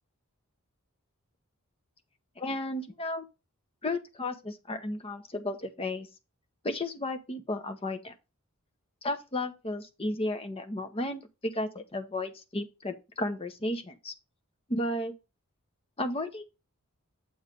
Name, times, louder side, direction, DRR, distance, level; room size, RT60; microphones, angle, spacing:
voice 1, 2.4-3.3 3.8-6.1 6.6-8.1 9.0-14.1 14.7-15.1 16.0-16.4, left 1 dB, 25° left, 0.8 m, -33 dB
7.9 x 3.1 x 5.2 m
head